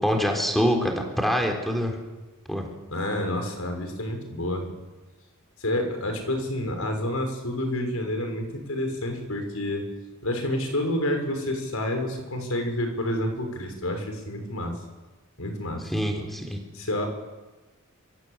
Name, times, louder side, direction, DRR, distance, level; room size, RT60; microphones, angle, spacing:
voice 1, 0.0-2.0 2.5-2.7 15.9-16.6, equal, ahead, 2 dB, 4.0 m, -25 dB
voice 2, 2.9-4.7 5.6-9.9 10.2-14.7 15.4-15.8 16.1-16.3 16.7-17.0, left 1 dB, 80° left, 4 dB, 6.1 m, -29 dB
26.5 x 25.0 x 8.3 m, 1.2 s
head